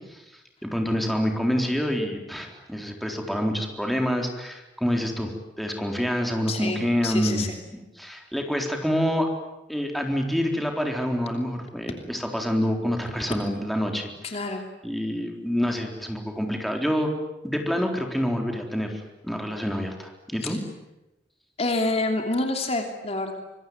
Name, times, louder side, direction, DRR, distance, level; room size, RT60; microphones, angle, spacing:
voice 1, 0.6-7.5 8.0-9.3 9.7-14.1 14.8-17.1 17.4-20.6, equal, ahead, 2 dB, 3.9 m, -27 dB
voice 2, 6.5-7.5 14.2-14.6 20.4-20.6 21.6-23.3, left 2 dB, 35° left, 4 dB, 3.0 m, -27 dB
26.0 x 23.0 x 9.5 m, 0.96 s
head